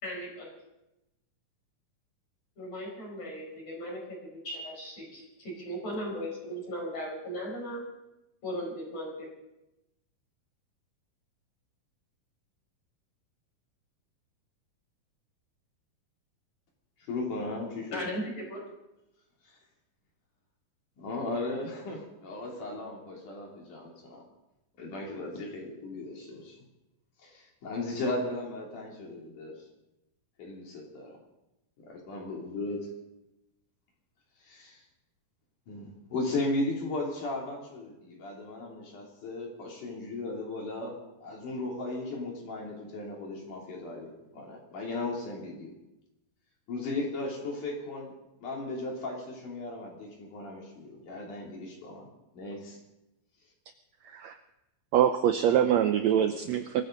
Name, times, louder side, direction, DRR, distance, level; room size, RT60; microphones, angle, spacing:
voice 1, 0.0-0.5 2.6-7.8 8.4-9.3 17.9-18.6, equal, 45° left, -1 dB, 6.1 m, -37 dB
voice 2, 17.1-18.0 19.5-19.6 21.0-24.2 24.8-26.6 27.2-29.5 30.4-31.2 31.8-32.9 34.4-34.8 35.7-45.7 46.7-48.1 48.4-52.1 52.3-52.8, left 2 dB, 65° left, -1 dB, 4.4 m, -36 dB
voice 3, 54.9-56.8, right 9 dB, 85° right, 8 dB, 1.5 m, -24 dB
23.5 x 15.0 x 3.9 m, 0.93 s
omnidirectional pair, 3.9 m